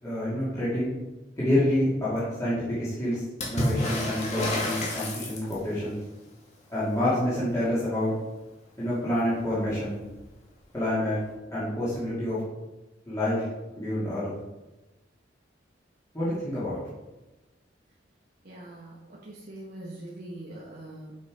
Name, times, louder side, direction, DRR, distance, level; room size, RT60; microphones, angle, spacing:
voice 1, 0.0-1.0 1.4-6.0 6.7-8.1 8.8-10.0 10.7-11.2 11.5-12.4 13.1-13.4 13.8-14.3 16.1-16.8, left 1 dB, 15° left, -11 dB, 2.8 m, -28 dB
Water / Splash splatter, 3.4-5.8 9.1-9.2 9.4-10.2 11.3-11.4, left 1 dB, 40° left, 2.3 m, -30 dB
voice 2, 18.4-21.2, right 1 dB, 50° right, -4 dB, 1.3 m, -42 dB
8.4 x 5.9 x 5.0 m, 1.1 s
head